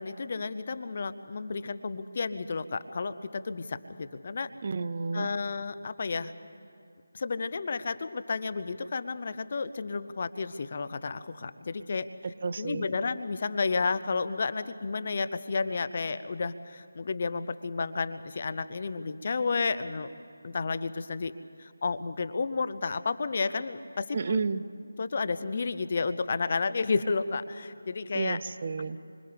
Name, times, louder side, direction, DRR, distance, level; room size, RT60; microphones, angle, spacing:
voice 1, 0.0-4.5 5.1-6.3 7.1-12.1 12.6-20.1 20.4-21.3 21.6-24.4 25.0-28.4, left 4 dB, 45° left, 13 dB, 0.7 m, -31 dB
voice 2, 4.6-5.3 12.4-12.9 24.1-24.6 28.1-29.0, right 4 dB, 40° right, 14 dB, 0.6 m, -31 dB
30.0 x 25.5 x 3.5 m, 2.4 s
figure-of-eight pair, 165°, 0 cm